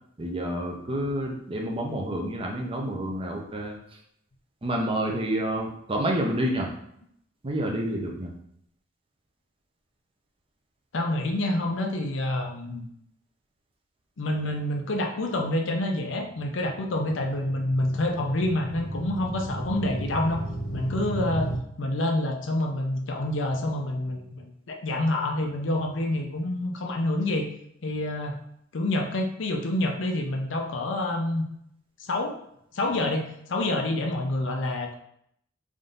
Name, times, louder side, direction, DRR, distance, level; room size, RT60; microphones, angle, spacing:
voice 1, 0.2-3.7 4.6-6.7 7.4-8.3, right 1 dB, 30° right, 0 dB, 0.6 m, -28 dB
voice 2, 10.9-12.9 14.2-20.4 20.7-21.5 21.8-27.5 27.8-28.4 28.7-31.5 32.0-32.4 32.7-34.9, left 1 dB, 70° left, 3 dB, 0.6 m, -27 dB
sound 1, 15.8-21.6, right 2 dB, 20° left, 0.8 m, -35 dB
3.6 x 2.7 x 3.8 m, 0.72 s
head